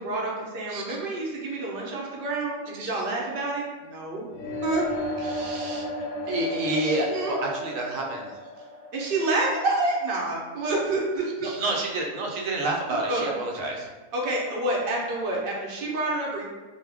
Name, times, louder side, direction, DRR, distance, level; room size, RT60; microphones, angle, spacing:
voice 1, 0.0-4.3 4.6-4.8 7.1-7.4 8.9-11.5 12.8-13.3 14.1-16.4, right 2 dB, 55° right, -3 dB, 0.7 m, -28 dB
sound 1, 4.3-10.2, left 1 dB, 70° left, 0.8 m, -34 dB
voice 2, 5.2-5.8 6.3-8.3 11.4-13.9, right 2 dB, 75° right, -1 dB, 1.0 m, -29 dB
2.3 x 2.1 x 3.3 m, 1.2 s
omnidirectional pair, 1.4 m